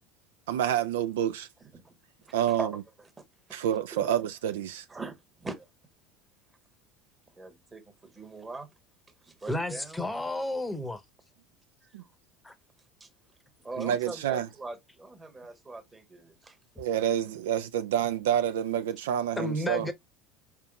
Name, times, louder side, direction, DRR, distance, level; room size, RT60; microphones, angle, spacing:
voice 1, 0.5-1.5 2.3-2.7 3.5-4.9 11.9-12.0 13.8-14.5 16.8-19.9, right 10 dB, 70° right, 0.3 m, -28 dB
voice 2, 2.2-2.7 3.9-4.1 4.9-5.7 7.4-8.7 9.2-10.0 11.8-12.0 13.0-13.1 13.6-16.6, right 3 dB, 20° right, 1.1 m, -41 dB
voice 3, 9.5-11.0 12.4-12.5 19.4-19.9, left 1 dB, 10° left, 0.8 m, -31 dB
4.4 x 3.6 x 2.2 m
figure-of-eight pair, 70°, 0 cm